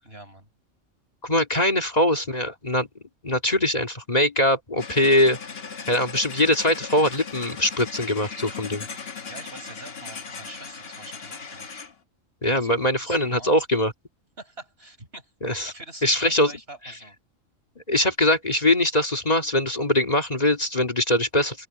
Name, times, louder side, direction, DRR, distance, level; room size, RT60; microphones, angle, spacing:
voice 1, 0.1-0.5 9.3-11.7 12.5-13.5 14.4-15.3 15.6-17.2, right 2 dB, 50° right, 7.1 m, -44 dB
voice 2, 1.2-2.9 3.2-5.4 5.9-8.9 12.4-13.9 15.4-15.7 16.0-16.5 17.9-21.7, left 1 dB, 30° left, 2.1 m, -22 dB
sound 1, 4.8-11.9, left 5 dB, 50° left, 1.6 m, -38 dB
open air
omnidirectional pair, 1.4 m